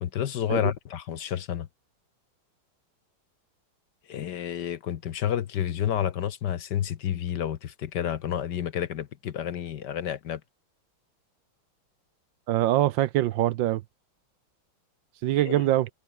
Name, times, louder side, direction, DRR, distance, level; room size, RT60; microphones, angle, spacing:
voice 1, 0.0-1.7 4.1-10.4 15.4-15.6, left 10 dB, 60° left, 1.4 m, -30 dB
voice 2, 12.5-13.8 15.2-15.9, right 14 dB, 70° right, 1.2 m, -23 dB
open air
omnidirectional pair, 2.3 m